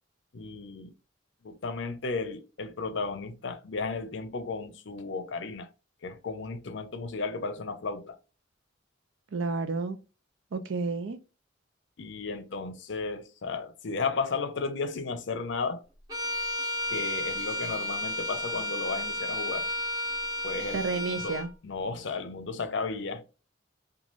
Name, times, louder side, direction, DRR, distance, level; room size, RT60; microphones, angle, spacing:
voice 1, 0.3-0.9 1.4-5.7 6.0-8.2 12.0-15.8 16.9-19.7 20.4-23.2, left 4 dB, 65° left, 0.5 m, -34 dB
voice 2, 9.3-10.0 10.5-11.2 20.7-21.5, right 4 dB, 70° right, 0.5 m, -30 dB
Bowed string instrument, 16.1-21.5, left 1 dB, 20° right, 0.9 m, -32 dB
3.1 x 2.3 x 2.4 m
head